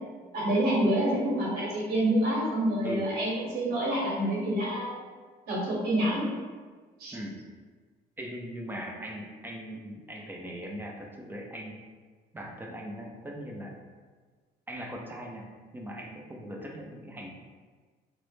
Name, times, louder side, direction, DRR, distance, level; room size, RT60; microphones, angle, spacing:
voice 1, 0.3-4.9 5.5-6.2 7.0-7.2, right 1 dB, 65° right, -5 dB, 0.9 m, -27 dB
voice 2, 8.2-11.8 12.3-13.7 14.7-15.5 15.7-17.3, equal, 10° right, -1 dB, 0.3 m, -40 dB
2.0 x 2.0 x 3.1 m, 1.5 s
cardioid pair, 110°, 17 cm